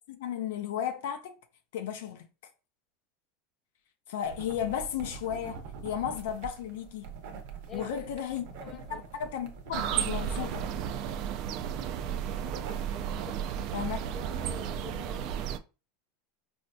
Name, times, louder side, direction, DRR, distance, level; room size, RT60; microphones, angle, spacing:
voice 1, 0.1-1.4 1.7-2.3 4.1-7.1 7.7-8.4 8.9-10.6 13.7-14.0, left 9 dB, 80° left, 0.5 m, -34 dB
sound 1, 4.2-14.8, right 5 dB, 70° right, 0.7 m, -44 dB
voice 2, 7.7-8.3 8.5-9.1 12.9-13.7 14.0-15.3, left 7 dB, 30° left, 0.5 m, -48 dB
sound 2, 9.7-15.6, right 9 dB, 55° right, 0.3 m, -33 dB
4.2 x 2.6 x 2.2 m
supercardioid pair, 120°, 0 cm